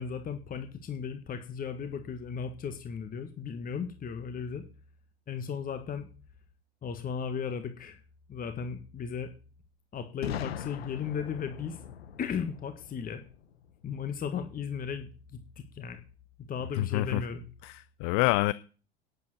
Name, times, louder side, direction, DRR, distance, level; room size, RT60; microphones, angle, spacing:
voice 1, 0.0-4.6 5.3-6.1 6.8-8.0 8.3-9.3 9.9-11.8 12.2-13.2 13.8-16.0 16.5-17.5, left 6 dB, 25° left, 8 dB, 1.6 m, -36 dB
Boom, 10.2-14.0, left 10 dB, 70° left, 1.2 m, -41 dB
voice 2, 16.8-17.2 17.6-18.5, left 19 dB, 50° left, 18 dB, 0.6 m, -27 dB
11.0 x 7.8 x 7.8 m, 0.37 s
figure-of-eight pair, 80°, 32 cm